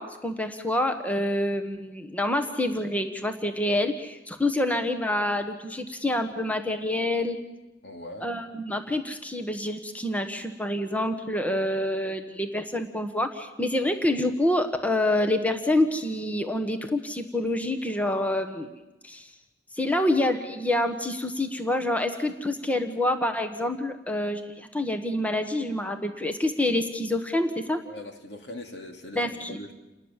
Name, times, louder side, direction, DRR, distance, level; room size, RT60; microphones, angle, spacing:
voice 1, 0.0-7.4 8.2-18.7 19.0-19.3 19.8-27.8 29.1-29.6, left 1 dB, 10° left, 7 dB, 1.4 m, -27 dB
voice 2, 7.8-8.3 27.8-29.7, left 1 dB, 65° left, 4 dB, 2.9 m, -41 dB
29.0 x 19.5 x 7.4 m, 1.0 s
head